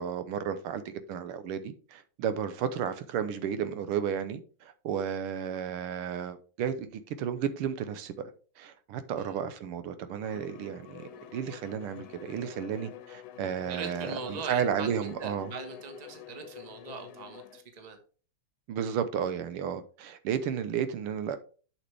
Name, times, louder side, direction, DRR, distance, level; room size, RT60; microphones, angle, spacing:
voice 1, 0.0-8.1 8.6-15.5 18.7-21.4, right 8 dB, 80° right, 1.6 m, -33 dB
Bowed string instrument, 10.2-17.6, left 11 dB, 75° left, 1.5 m, -47 dB
voice 2, 13.7-18.0, right 5 dB, 25° right, 1.0 m, -41 dB
7.5 x 6.7 x 3.3 m
omnidirectional pair, 2.4 m